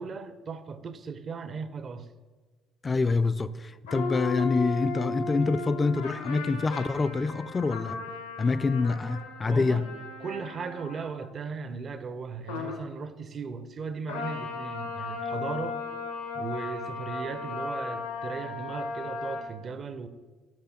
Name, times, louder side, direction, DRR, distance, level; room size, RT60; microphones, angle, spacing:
voice 1, 0.0-2.1 9.5-9.9 10.2-15.8 16.3-20.1, right 5 dB, 45° right, 0.7 m, -37 dB
voice 2, 2.8-8.0 8.4-9.9, left 4 dB, 30° left, 0.4 m, -26 dB
sound 1, 3.9-11.3 12.5-12.8 14.1-19.4, left 3 dB, 90° left, 1.0 m, -36 dB
7.7 x 5.5 x 5.7 m
hypercardioid pair, 55°, 0 cm